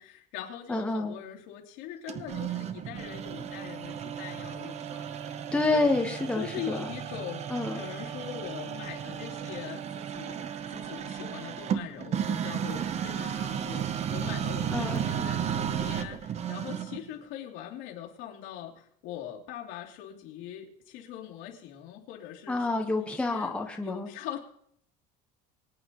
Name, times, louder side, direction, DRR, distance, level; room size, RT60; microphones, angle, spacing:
voice 1, 0.0-5.3 5.7-5.9 6.4-7.4 7.7-23.5 23.8-24.4, left 10 dB, 70° left, -1 dB, 2.9 m, -42 dB
voice 2, 0.7-1.1 5.5-6.9 7.5-7.8 14.7-15.0 22.5-24.1, left 2 dB, 5° left, 1 dB, 1.1 m, -28 dB
sound 1, 2.1-17.1, right 9 dB, 30° right, 0.8 m, -34 dB
24.0 x 8.9 x 3.0 m, 0.68 s
cardioid pair, 155°, 21 cm